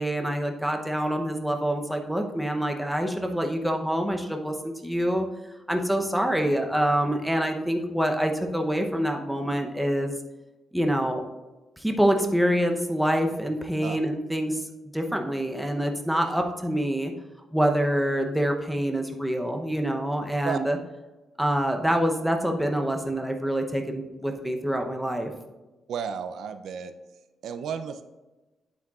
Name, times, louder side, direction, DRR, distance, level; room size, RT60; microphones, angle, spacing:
voice 1, 0.0-5.3 5.7-10.1 10.7-11.2 11.8-14.6 14.9-17.1 17.5-20.8 21.4-25.3, equal, ahead, 3 dB, 0.7 m, -26 dB
voice 2, 25.9-26.9 27.4-28.0, right 7 dB, 75° right, 9 dB, 0.4 m, -32 dB
8.8 x 7.8 x 2.4 m, 1.1 s
cardioid pair, 130°, 0 cm